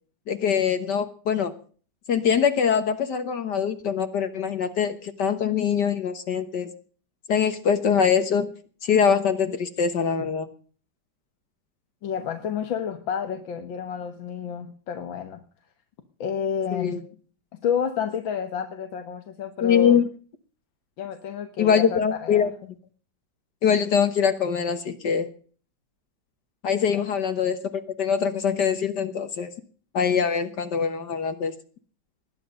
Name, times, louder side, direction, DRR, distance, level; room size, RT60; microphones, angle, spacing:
voice 1, 0.3-1.5 2.1-6.7 7.3-8.5 8.8-10.5 16.7-17.0 19.6-20.0 21.6-22.5 23.6-25.3 26.6-27.6 28.0-29.5 29.9-31.5, left 7 dB, 65° left, 9 dB, 1.8 m, -23 dB
voice 2, 12.0-15.4 16.2-17.0 17.6-20.0 21.0-22.5 27.0-27.1, left 7 dB, 90° left, 8 dB, 2.1 m, -30 dB
20.5 x 11.0 x 5.3 m, 0.42 s
omnidirectional pair, 2.0 m